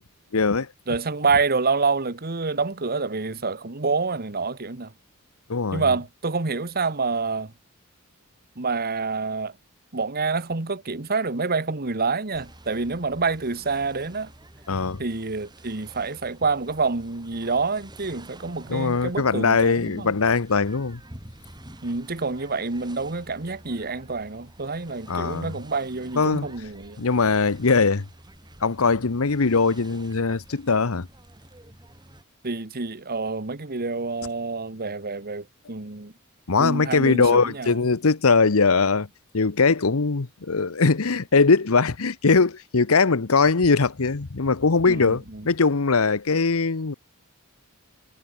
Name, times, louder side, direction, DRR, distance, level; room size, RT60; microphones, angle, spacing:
voice 1, 0.3-0.7 5.5-5.9 14.7-15.0 18.7-21.0 25.1-25.5 26.2-26.5 27.0-28.0 28.6-31.1 36.5-39.1 39.3-46.9, left 4 dB, 75° left, 1.0 m, -21 dB
voice 2, 0.9-4.9 5.7-7.5 8.6-9.5 9.9-14.3 15.0-20.1 21.8-27.0 32.4-36.1 36.6-37.8 44.9-45.5, right 4 dB, 45° right, 1.5 m, -27 dB
sound 1, 12.3-32.2, right 1 dB, 20° right, 3.8 m, -49 dB
head